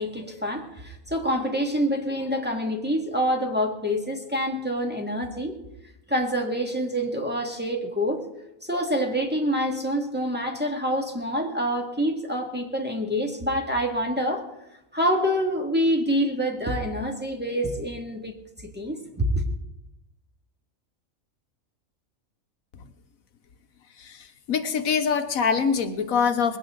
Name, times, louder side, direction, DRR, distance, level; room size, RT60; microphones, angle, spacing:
voice 1, 0.0-5.6 6.1-8.2 8.6-14.4 14.9-18.3 18.6-19.3, equal, 5° right, 0 dB, 2.0 m, -26 dB
voice 2, 24.0-26.6, left 6 dB, 75° left, 8 dB, 1.3 m, -24 dB
20.5 x 17.0 x 3.9 m, 0.88 s
omnidirectional pair, 1.5 m